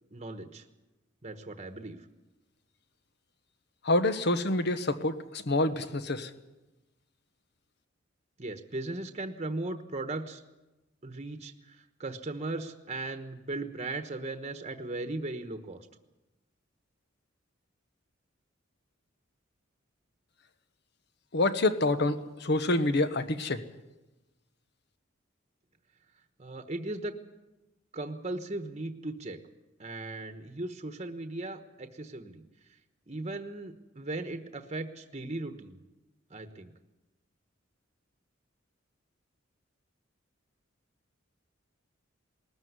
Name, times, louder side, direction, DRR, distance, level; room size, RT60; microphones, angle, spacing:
voice 1, 0.1-0.6 1.2-2.0 8.4-10.4 11.0-15.9 26.4-27.1 27.9-29.4 29.8-32.4 33.1-35.8 36.3-36.7, right 2 dB, 35° right, 7 dB, 1.2 m, -37 dB
voice 2, 3.8-6.3 21.3-23.6, left 2 dB, 60° left, 11 dB, 1.2 m, -27 dB
19.5 x 14.0 x 9.6 m, 1.0 s
head